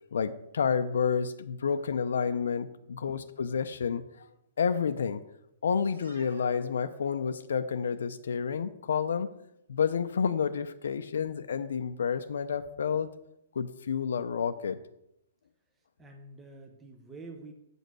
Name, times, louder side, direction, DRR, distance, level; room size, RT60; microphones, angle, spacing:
voice 1, 0.1-4.3 4.6-5.2 5.6-9.3 9.7-13.1 13.6-14.8, left 6 dB, 85° left, 9 dB, 0.6 m, -30 dB
sound 1, 5.9-7.7, right 2 dB, 85° right, 2.8 m, -53 dB
voice 2, 16.0-17.5, right 3 dB, 10° right, 3 dB, 0.6 m, -48 dB
7.8 x 5.3 x 6.1 m, 0.82 s
hypercardioid pair, 170°, 0 cm